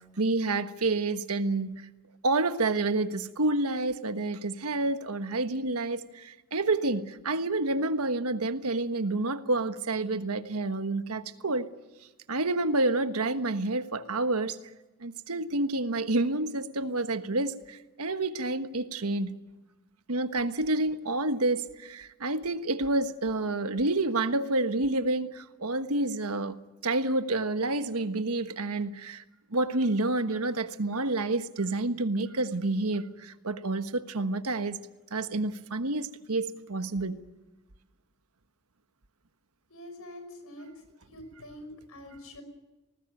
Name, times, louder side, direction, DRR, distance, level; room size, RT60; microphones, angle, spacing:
voice 1, 0.0-1.8 2.2-11.7 12.3-14.6 15.0-19.4 20.1-26.6 26.8-29.2 29.5-34.8 35.1-37.2, right 2 dB, 90° right, 1.3 m, -29 dB
voice 2, 39.7-40.7 41.1-42.4, left 1 dB, 75° left, 5.6 m, -45 dB
20.0 x 19.0 x 9.1 m
head